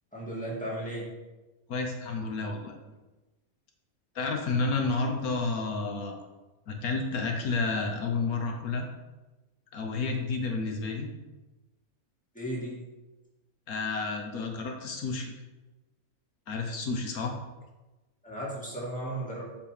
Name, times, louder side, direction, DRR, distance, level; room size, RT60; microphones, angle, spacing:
voice 1, 0.1-1.1 12.3-12.8 18.2-19.4, right 1 dB, 5° left, -5 dB, 2.2 m, -35 dB
voice 2, 1.7-2.7 4.1-6.2 6.7-8.9 9.7-11.1 13.7-15.3 16.5-17.3, left 3 dB, 85° left, 2 dB, 1.5 m, -30 dB
7.1 x 5.3 x 5.1 m, 1.1 s
omnidirectional pair, 1.5 m